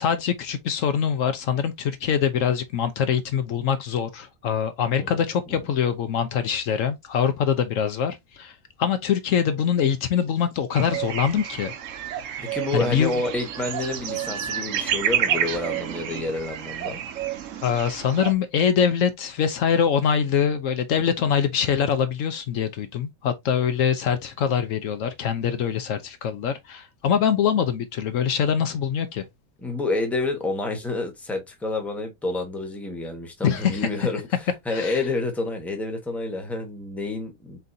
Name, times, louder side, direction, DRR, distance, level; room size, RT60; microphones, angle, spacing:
voice 1, 0.0-11.7 12.7-13.2 17.6-29.2 33.4-33.9 34.7-35.0, left 8 dB, 70° left, 1.0 m, -24 dB
sound 1, 10.7-18.3, right 9 dB, 65° right, 1.0 m, -29 dB
voice 2, 12.4-17.0 29.6-34.3 34.6-37.6, left 2 dB, ahead, 1.0 m, -29 dB
4.5 x 3.8 x 2.7 m
omnidirectional pair, 1.5 m